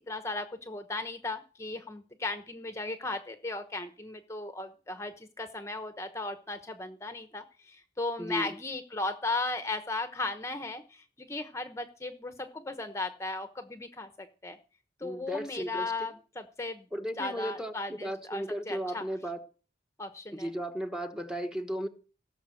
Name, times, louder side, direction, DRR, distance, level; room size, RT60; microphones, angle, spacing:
voice 1, 0.0-14.6 15.0-16.9 17.2-19.0 20.0-20.5, left 2 dB, 15° left, 1.0 m, -36 dB
voice 2, 8.2-8.5 15.0-15.9 16.9-19.4 20.3-21.9, equal, 5° right, 1.3 m, -35 dB
18.0 x 6.8 x 7.7 m
head